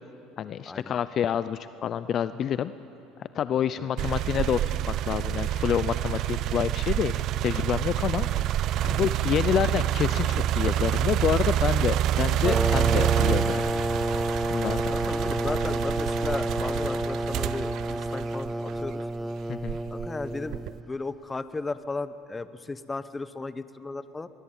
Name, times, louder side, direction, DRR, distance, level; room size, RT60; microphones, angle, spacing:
voice 1, 0.4-2.7 3.2-4.6 4.9-7.2 7.4-8.3 8.8-13.7 14.5-14.8 19.5-19.8, left 9 dB, 40° left, 14 dB, 0.5 m, -28 dB
sound 1, 4.0-19.0 19.6-20.8, right 12 dB, 55° right, 0.5 m, -27 dB
sound 2, 12.4-20.8, right 1 dB, 5° right, 0.6 m, -29 dB
voice 2, 14.9-19.0 19.9-20.6 20.9-24.3, left 3 dB, 15° left, 13 dB, 0.9 m, -35 dB
22.5 x 21.0 x 8.8 m, 2.8 s
cardioid pair, 125°, 0 cm